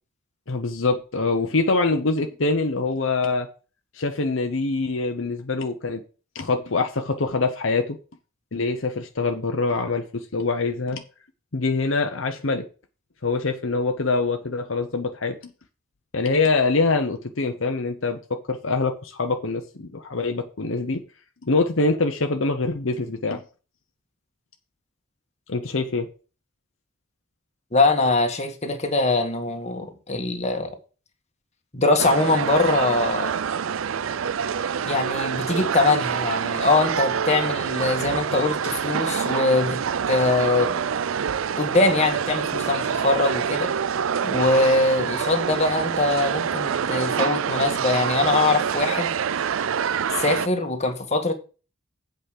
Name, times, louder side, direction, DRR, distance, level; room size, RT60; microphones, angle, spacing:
voice 1, 0.5-3.5 3.9-6.0 6.3-8.0 8.5-11.0 11.5-12.6 13.2-15.4 16.1-21.0 21.4-23.4 25.5-26.1, left 3 dB, 75° left, 1.0 m, -24 dB
voice 2, 27.7-30.7 31.7-33.3 34.8-40.8 41.6-43.7 44.2-49.1 50.2-51.3, left 2 dB, 35° left, 1.8 m, -22 dB
sound 1, 32.0-50.5, right 7 dB, 85° right, 0.5 m, -26 dB
8.1 x 5.3 x 6.6 m
head